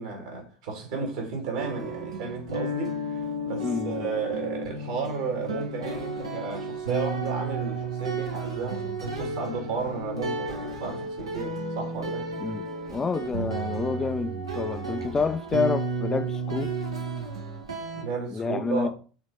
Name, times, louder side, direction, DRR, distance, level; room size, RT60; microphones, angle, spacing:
voice 1, 0.0-3.2 3.5-12.3 17.9-18.9, right 5 dB, 60° right, 2.6 m, -33 dB
sound 1, 1.6-18.0, right 2 dB, 75° right, 1.4 m, -32 dB
voice 2, 3.6-4.1 12.4-16.7 18.3-18.9, left 4 dB, 20° left, 0.5 m, -29 dB
6.3 x 4.0 x 4.8 m
figure-of-eight pair, 75°, 3 cm